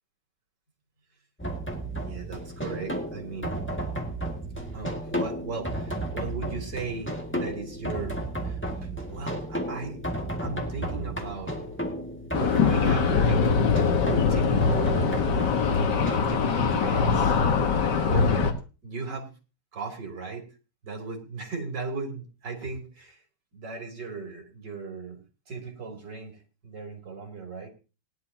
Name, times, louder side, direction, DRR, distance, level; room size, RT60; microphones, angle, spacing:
sound 1, 1.4-16.2, right 1 dB, 5° left, 1.6 m, -33 dB
voice 1, 2.0-3.5 4.7-10.0 10.4-11.5 12.4-13.5 14.3-15.1 15.7-17.4 17.7-18.3 18.8-19.3 19.7-20.4 20.8-23.2 23.5-25.2 25.5-27.7, right 4 dB, 50° right, 1 dB, 3.6 m, -37 dB
sound 2, 12.3-18.5, left 5 dB, 55° left, 1.9 m, -23 dB
19.5 x 11.5 x 2.8 m, 0.33 s
omnidirectional pair, 2.4 m